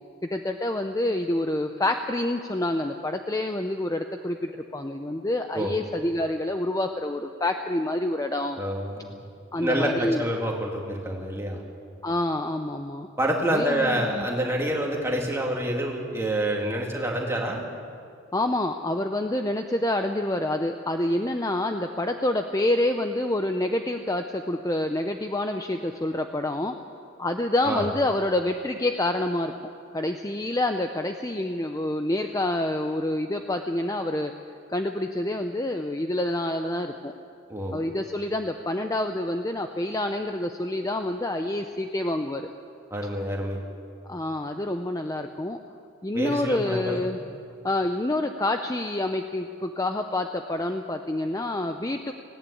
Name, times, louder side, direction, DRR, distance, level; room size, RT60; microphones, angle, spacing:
voice 1, 0.2-8.6 9.5-10.2 12.0-13.1 13.4-14.3 18.3-26.8 27.2-29.5 29.9-34.3 34.7-37.1 37.7-42.5 44.1-45.6 46.0-47.2 47.6-52.1, left 1 dB, 15° left, 6 dB, 0.6 m, -27 dB
voice 2, 8.6-9.1 9.6-11.6 13.2-17.6 27.6-27.9 37.5-37.8 42.9-43.6 46.1-47.1, right 1 dB, 10° right, -1 dB, 2.5 m, -27 dB
18.5 x 17.5 x 8.5 m, 2.3 s
head